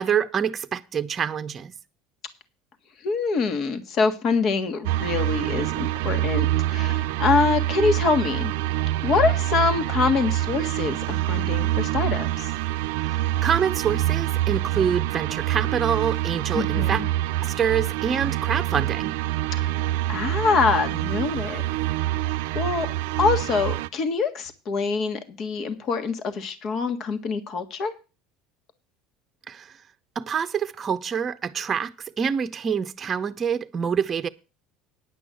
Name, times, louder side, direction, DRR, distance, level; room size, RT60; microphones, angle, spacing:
voice 1, 0.0-1.7 13.0-17.0 17.4-19.2 29.5-29.7 30.2-34.3, right 7 dB, 35° right, 0.7 m, -26 dB
voice 2, 3.0-8.5 9.0-12.5 16.5-17.1 19.6-19.7 20.1-21.6 22.5-27.9, left 4 dB, 50° left, 1.6 m, -25 dB
sound 1, 4.8-23.9, right 15 dB, 80° right, 0.5 m, -26 dB
10.0 x 6.1 x 7.8 m
supercardioid pair, 90°, 0 cm